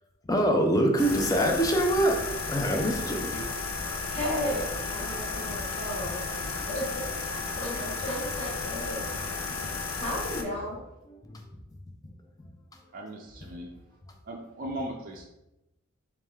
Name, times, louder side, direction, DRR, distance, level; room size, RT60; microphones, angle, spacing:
voice 1, 0.3-2.2 2.5-3.4 6.6-6.7 9.6-9.8 11.3-11.4, right 1 dB, 15° left, 3 dB, 0.5 m, -25 dB
sound 1, 1.0-10.4, left 4 dB, 80° left, 0.5 m, -33 dB
voice 2, 4.1-9.1 10.0-10.8, equal, 35° left, -6 dB, 1.3 m, -34 dB
voice 3, 12.9-13.7 14.3-15.3, right 1 dB, 40° right, -1 dB, 0.4 m, -38 dB
3.4 x 3.2 x 3.4 m, 0.93 s
head